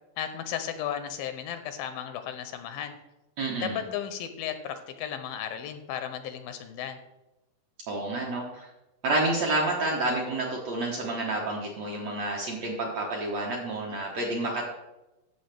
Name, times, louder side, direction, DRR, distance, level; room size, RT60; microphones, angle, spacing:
voice 1, 0.2-3.0 3.6-7.0, left 9 dB, 80° left, 8 dB, 2.3 m, -34 dB
voice 2, 3.4-3.8 7.9-8.7 9.0-14.6, right 2 dB, 65° right, -2 dB, 1.7 m, -29 dB
14.0 x 6.4 x 3.4 m, 0.98 s
omnidirectional pair, 4.3 m